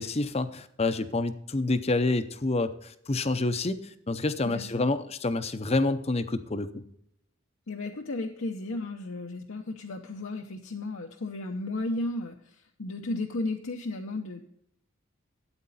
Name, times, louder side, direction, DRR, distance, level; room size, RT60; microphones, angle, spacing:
voice 1, 0.0-3.8 4.1-6.8, left 2 dB, 30° left, 11 dB, 0.6 m, -28 dB
voice 2, 4.4-4.8 7.7-14.4, left 2 dB, 70° left, 2 dB, 0.8 m, -34 dB
12.5 x 8.8 x 4.1 m, 0.74 s
head